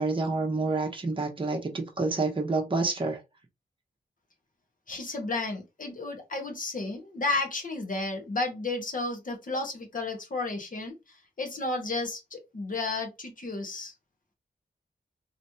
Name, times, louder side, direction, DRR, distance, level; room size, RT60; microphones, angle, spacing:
voice 1, 0.0-3.2, right 3 dB, 30° right, 0.9 m, -28 dB
voice 2, 4.9-10.9 11.4-13.9, left 2 dB, 50° left, 1.2 m, -32 dB
3.1 x 3.0 x 2.8 m
wide cardioid pair, 125°, 17 cm